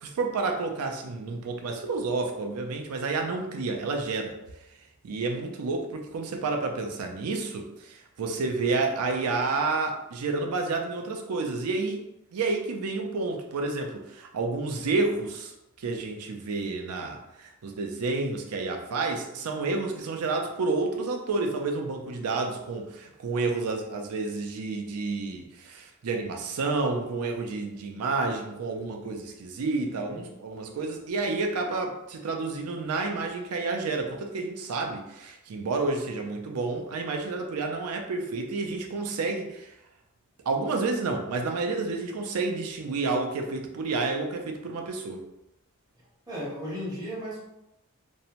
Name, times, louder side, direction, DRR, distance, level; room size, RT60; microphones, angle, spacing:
voice 1, 0.0-4.3 5.0-12.0 12.3-15.5 15.8-39.7 40.5-45.2, right 3 dB, 80° right, 3 dB, 0.4 m, -30 dB
voice 2, 30.0-30.3 46.3-47.4, equal, 20° right, -7 dB, 0.6 m, -35 dB
2.6 x 2.1 x 2.8 m, 0.90 s
head